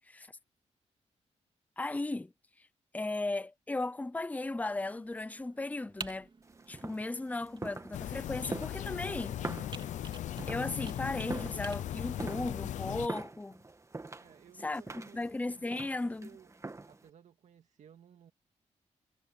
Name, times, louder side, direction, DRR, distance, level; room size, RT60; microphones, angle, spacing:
voice 1, 1.8-2.3 2.9-6.3 6.7-9.4 10.5-13.6 14.6-16.3, left 2 dB, 10° left, 0.6 m, -36 dB
Computer keyboard, 4.4-11.8, right 4 dB, 40° right, 2.9 m, -51 dB
sound 1, 6.4-17.1, right 3 dB, 25° right, 1.8 m, -45 dB
sound 2, 7.9-13.1, left 12 dB, 85° left, 0.6 m, -38 dB
voice 2, 14.2-15.2 15.6-16.5 16.9-18.3, right 9 dB, 75° right, 2.1 m, -57 dB
cardioid pair, 80°, 12 cm